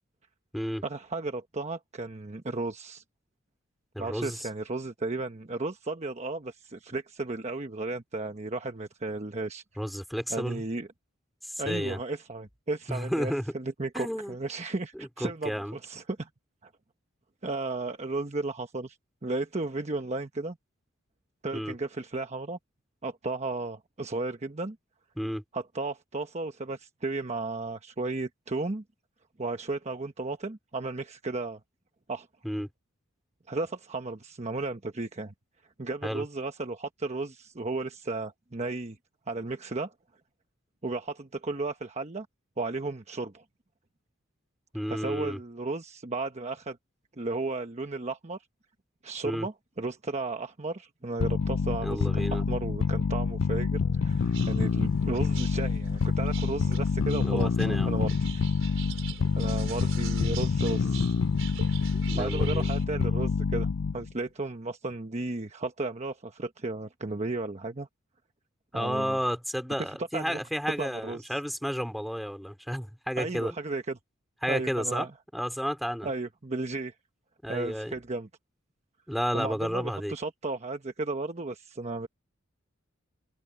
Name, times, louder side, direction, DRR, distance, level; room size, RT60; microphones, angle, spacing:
voice 1, 0.8-3.0 4.0-9.6 10.3-10.9 11.6-16.3 16.6-16.7 17.4-19.0 19.2-20.6 21.4-22.6 23.0-24.8 25.5-28.8 29.4-31.6 32.1-32.3 33.5-35.3 35.8-39.0 39.3-39.9 40.8-42.3 42.6-43.4 44.9-46.8 47.2-48.4 49.0-58.4 59.4-61.1 61.6-61.9 62.2-63.7 63.9-67.9 68.7-69.2 70.1-70.4 70.8-71.3 73.2-74.0 74.5-75.1 76.0-76.9 77.5-78.3 79.3-82.1, right 3 dB, 35° right, 1.1 m, -34 dB
voice 2, 3.9-4.5 9.8-10.6 11.4-12.0 12.9-13.5 13.9-14.4 14.9-15.8 21.5-21.7 25.2-25.4 32.4-32.7 36.0-36.3 44.7-45.4 49.2-49.5 51.8-52.4 57.2-57.9 60.2-60.3 60.8-61.0 61.9-62.7 68.7-73.6 74.4-75.1 75.3-76.1 77.4-77.9 79.1-80.1, equal, ahead, 3.8 m, -32 dB
sound 1, 51.2-64.1, left 5 dB, 65° left, 0.4 m, -27 dB
sound 2, 54.1-62.9, right 6 dB, 70° right, 4.9 m, -44 dB
head